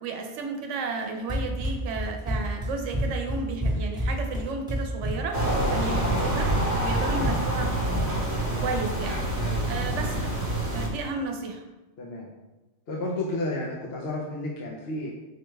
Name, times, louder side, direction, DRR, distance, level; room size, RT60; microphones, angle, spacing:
voice 1, 0.0-5.4 5.7-6.5 6.8-7.9 8.1-8.2 8.6-9.2 9.7-10.2 10.7-11.6, right 3 dB, 85° right, 3 dB, 0.9 m, -33 dB
Run, 1.3-8.3, equal, 5° right, 0.8 m, -29 dB
sound 1, 5.3-10.9, right 1 dB, 50° right, 1.0 m, -27 dB
voice 2, 9.4-9.7 12.0-12.3 12.9-15.1, left 2 dB, 65° left, -3 dB, 0.8 m, -32 dB
4.6 x 2.2 x 3.1 m, 1.1 s
omnidirectional pair, 1.2 m